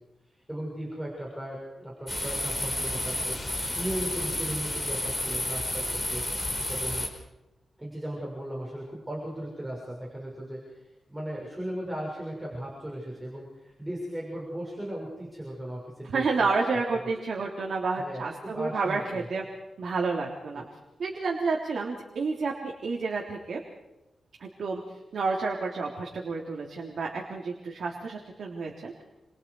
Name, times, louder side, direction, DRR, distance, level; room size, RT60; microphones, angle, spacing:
voice 1, 0.3-6.2 6.7-7.1 7.8-16.2 16.7-17.0 18.0-19.3 20.5-20.7, right 1 dB, 10° right, -3 dB, 6.3 m, -37 dB
sound 1, 2.1-7.1, left 1 dB, 15° left, 5.7 m, -31 dB
voice 2, 16.1-19.4 19.8-20.6 21.0-23.6 24.4-24.8 25.1-29.0, right 4 dB, 60° right, -1 dB, 3.5 m, -30 dB
30.0 x 25.0 x 4.9 m, 0.98 s
wide cardioid pair, 130°, 0 cm